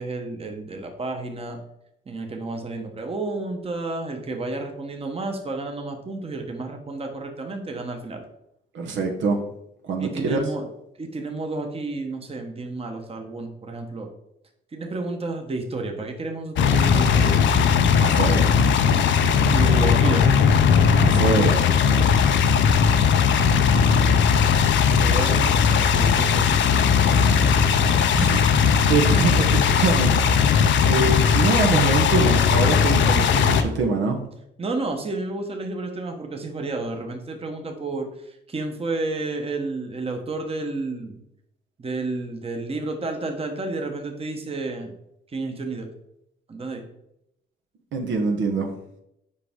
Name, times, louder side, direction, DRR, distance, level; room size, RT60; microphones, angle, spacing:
voice 1, 0.0-1.6 2.1-8.2 10.0-10.7 11.0-14.1 14.7-17.4 19.5-20.3 25.0-27.2 34.6-41.2 41.8-44.9 45.3-45.9 46.5-46.8, right 2 dB, 30° right, 4 dB, 1.1 m, -31 dB
voice 2, 8.7-9.4 9.8-10.4 18.0-18.6 21.0-21.7 28.1-34.2 47.9-48.7, right 4 dB, 70° right, 3 dB, 1.1 m, -24 dB
sound 1, 16.6-33.6, left 6 dB, 70° left, 0.6 m, -18 dB
6.6 x 4.9 x 3.7 m, 0.80 s
cardioid pair, 90°, 20 cm